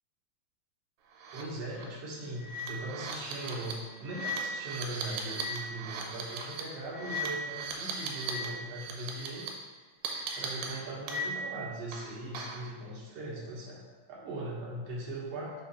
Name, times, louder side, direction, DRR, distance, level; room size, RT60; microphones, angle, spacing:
sound 1, 1.2-1.4 1.7-1.8 2.4-8.5 8.7-9.5 10.0-11.6 11.9-12.7, right 1 dB, 80° right, 2.3 m, -37 dB
voice 1, 1.3-9.5 10.3-13.8 14.1-15.5, right 1 dB, 60° right, -4 dB, 1.7 m, -40 dB
5.8 x 3.4 x 5.4 m, 1.3 s
omnidirectional pair, 4.2 m